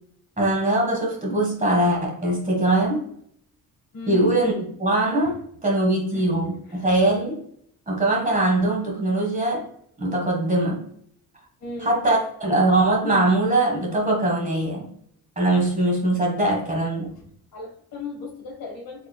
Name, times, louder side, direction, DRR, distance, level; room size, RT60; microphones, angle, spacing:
voice 1, 0.4-3.1 4.1-7.4 7.9-9.7 10.0-10.8 11.8-14.9 15.4-17.1, right 2 dB, 20° right, 0 dB, 1.4 m, -22 dB
voice 2, 3.9-4.3 5.2-5.3 6.1-6.9 11.6-11.9 17.5-19.1, left 3 dB, 70° left, 1 dB, 1.6 m, -37 dB
4.3 x 3.5 x 2.3 m, 0.66 s
cardioid pair, 100°, 37 cm